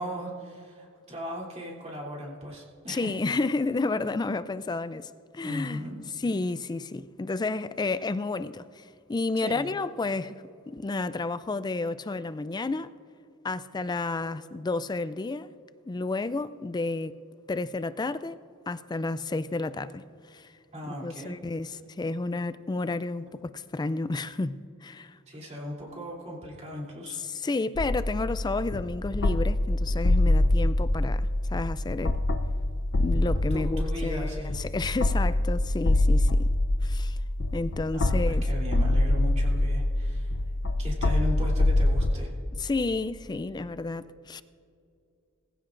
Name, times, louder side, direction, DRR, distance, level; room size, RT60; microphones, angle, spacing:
voice 1, 0.0-3.1 5.4-6.0 9.4-9.7 20.7-21.3 25.3-27.2 33.5-34.6 37.9-40.3 40.8-42.3, equal, 30° right, 3.1 m, -37 dB
voice 2, 2.9-5.9 6.2-10.4 10.7-12.9 13.4-15.5 15.8-17.2 17.5-18.4 18.7-20.5 20.8-25.2 27.1-32.2 32.9-36.5 36.8-37.2 37.5-38.4 42.6-44.4, left 3 dB, 20° left, 0.3 m, -31 dB
sound 1, 27.8-42.1, left 1 dB, 50° left, 0.7 m, -25 dB
21.0 x 15.0 x 2.6 m
head